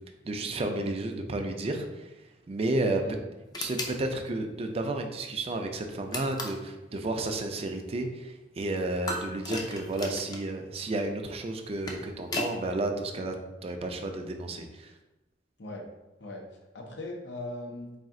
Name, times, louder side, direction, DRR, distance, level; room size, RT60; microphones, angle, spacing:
voice 1, 0.2-2.1 2.5-3.0 3.6-13.3 13.6-14.9, right 2 dB, 35° right, 5 dB, 0.4 m, -32 dB
voice 2, 2.9-3.2 15.6-15.8 16.2-16.4 16.7-17.9, left 1 dB, 90° left, 1 dB, 0.7 m, -39 dB
sound 1, 3.5-4.0 6.1-6.7 9.1-10.5 11.6-12.6, left 2 dB, 25° left, 0.5 m, -35 dB
4.1 x 2.4 x 3.6 m, 1.0 s
head